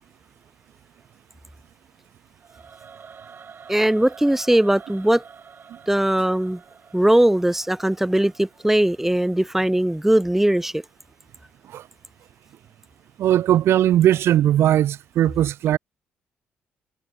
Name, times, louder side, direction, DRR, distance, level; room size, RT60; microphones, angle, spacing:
Singing / Musical instrument, 2.4-9.5, right 6 dB, 50° right, 4.3 m, -47 dB
voice 1, 3.7-5.2 5.9-6.6 6.9-10.8, right 1 dB, 5° right, 1.1 m, -19 dB
voice 2, 13.2-15.8, right 12 dB, 65° right, 0.9 m, -19 dB
hypercardioid pair, 50°, 5 cm